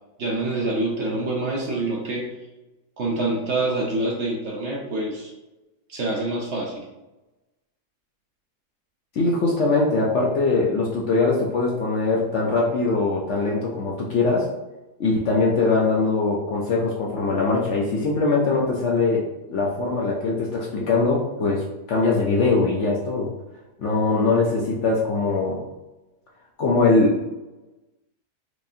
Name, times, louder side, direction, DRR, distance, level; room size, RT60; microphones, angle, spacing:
voice 1, 0.2-2.3 3.0-5.3 5.9-6.8, right 2 dB, 60° right, -2 dB, 0.8 m, -26 dB
voice 2, 9.1-14.5 15.0-19.3 19.5-23.3 23.8-25.6 26.6-27.2, left 3 dB, 65° left, -3 dB, 0.8 m, -22 dB
4.8 x 2.6 x 2.6 m, 1.0 s
omnidirectional pair, 1.7 m